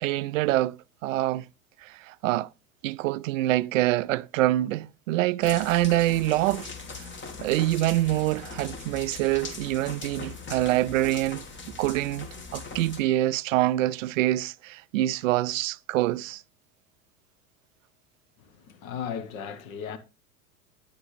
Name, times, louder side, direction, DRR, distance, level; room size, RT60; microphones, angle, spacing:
voice 1, 0.0-1.4 1.8-2.5 2.8-7.1 7.4-11.4 11.8-16.4, right 15 dB, 60° right, 0.5 m, -25 dB
sound 1, 5.4-13.0, left 4 dB, 25° left, 1.6 m, -40 dB
voice 2, 18.4-20.0, left 7 dB, 60° left, 1.3 m, -36 dB
10.0 x 9.7 x 3.3 m
figure-of-eight pair, 85°, 45 cm